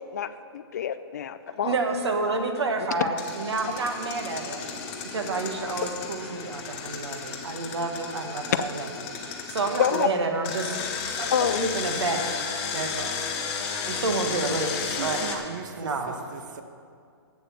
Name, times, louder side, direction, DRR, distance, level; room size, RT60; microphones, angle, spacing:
voice 1, 0.0-1.8 9.8-10.1 11.3-11.7, left 8 dB, 40° left, 12 dB, 0.4 m, -27 dB
voice 2, 1.5-4.7 5.1-8.9 9.3-10.8 11.2-12.3 12.7-13.2 13.9-15.2 15.8-16.2, right 3 dB, 80° right, 4 dB, 1.4 m, -29 dB
Engine, 3.2-10.0 10.4-15.4, left 5 dB, 25° left, 0.9 m, -33 dB
voice 3, 14.9-16.6, right 6 dB, 45° right, 7 dB, 0.7 m, -38 dB
8.3 x 7.4 x 7.0 m, 2.3 s
hypercardioid pair, 170°, 14 cm